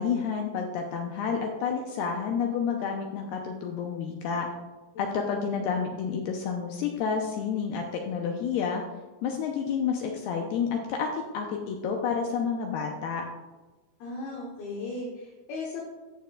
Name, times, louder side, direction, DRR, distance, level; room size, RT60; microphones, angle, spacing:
voice 1, 0.0-4.5 5.0-8.8 9.2-13.3, left 6 dB, 90° left, 2 dB, 2.3 m, -30 dB
voice 2, 14.0-15.8, left 2 dB, 70° left, -2 dB, 2.6 m, -36 dB
14.5 x 6.6 x 2.3 m, 1.2 s
omnidirectional pair, 5.3 m